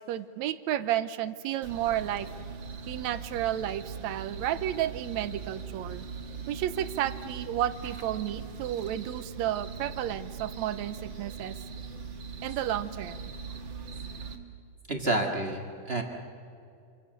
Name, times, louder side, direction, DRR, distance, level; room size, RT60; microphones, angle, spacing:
voice 1, 0.1-2.3 2.9-6.1 6.5-11.6 12.4-13.2, right 12 dB, 75° right, 14 dB, 2.0 m, -32 dB
sound 1, 1.6-14.4, right 5 dB, 45° right, 1.9 m, -40 dB
voice 2, 14.9-16.0, right 2 dB, 25° right, 2 dB, 1.4 m, -29 dB
27.0 x 25.5 x 6.8 m, 2.5 s
omnidirectional pair, 3.5 m